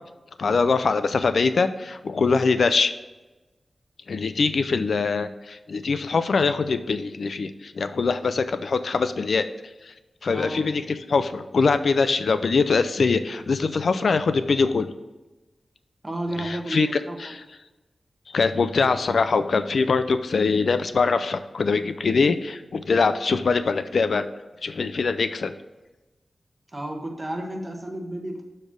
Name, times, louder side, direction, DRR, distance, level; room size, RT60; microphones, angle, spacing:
voice 1, 0.4-2.9 4.1-9.5 10.2-14.9 16.4-17.4 18.3-24.3 24.6-25.5, left 4 dB, 70° left, 11 dB, 0.4 m, -23 dB
voice 2, 10.3-10.6 16.0-17.2 26.7-28.4, right 1 dB, 20° right, 1 dB, 1.3 m, -32 dB
6.9 x 4.3 x 6.0 m, 1.1 s
wide cardioid pair, 130°, 0 cm